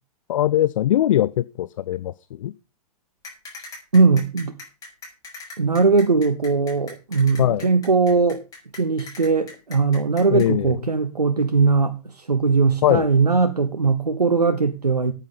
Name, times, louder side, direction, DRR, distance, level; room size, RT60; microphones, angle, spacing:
voice 1, 0.3-2.1 2.4-2.5 7.4-7.7 10.3-10.8 12.8-13.1, left 12 dB, 55° left, 0.6 m, -20 dB
sound 1, 3.2-10.5, left 3 dB, 20° left, 7.3 m, -40 dB
voice 2, 3.9-4.5 5.6-8.4 8.7-15.1, right 4 dB, 85° right, 1.1 m, -20 dB
14.5 x 9.0 x 5.3 m
figure-of-eight pair, 110°, 20 cm